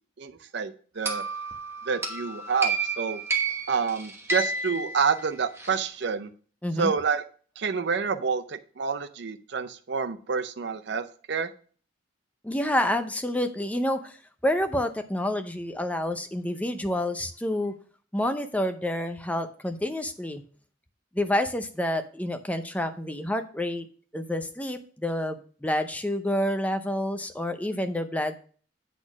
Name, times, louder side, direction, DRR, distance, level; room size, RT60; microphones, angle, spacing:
voice 1, 0.2-1.2 1.9-3.2 3.7-6.3 6.8-7.2 7.6-11.5, right 5 dB, 60° right, 9 dB, 0.5 m, -28 dB
sound 1, 1.0-5.8, right 3 dB, 15° right, 1.0 m, -31 dB
voice 2, 6.6-6.9 12.4-14.2 14.4-17.7 18.1-20.4 21.1-23.9 24.1-28.4, left 1 dB, 5° left, 8 dB, 0.6 m, -28 dB
8.2 x 4.3 x 5.9 m, 0.43 s
head